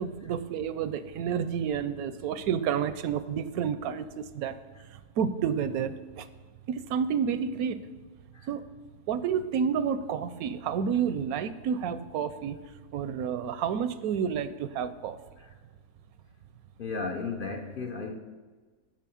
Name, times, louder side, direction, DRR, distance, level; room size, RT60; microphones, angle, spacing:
voice 1, 0.0-4.6 4.9-6.3 6.7-7.8 8.5-8.7 9.1-12.6 12.9-15.2, right 7 dB, 80° right, 13 dB, 1.0 m, -30 dB
voice 2, 16.8-18.2, left 4 dB, 50° left, 4 dB, 0.6 m, -34 dB
9.1 x 5.5 x 6.9 m, 1.4 s
omnidirectional pair, 1.6 m